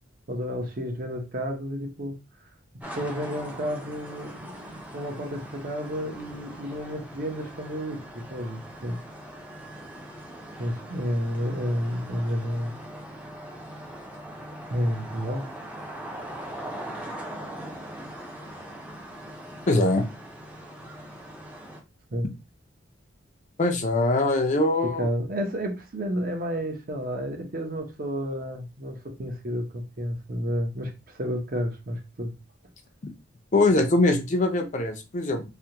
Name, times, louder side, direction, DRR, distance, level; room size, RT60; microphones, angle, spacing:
voice 1, 0.3-2.2 2.9-9.0 10.6-12.7 14.7-15.4 22.1-22.3 24.8-32.3, equal, 45° right, 0.7 m, -31 dB
sound 1, 2.8-21.8, right 1 dB, 5° right, 0.5 m, -41 dB
voice 2, 19.7-20.0 23.6-25.1 33.0-33.1 33.5-35.4, left 2 dB, 40° left, 0.5 m, -22 dB
3.3 x 2.2 x 2.8 m
head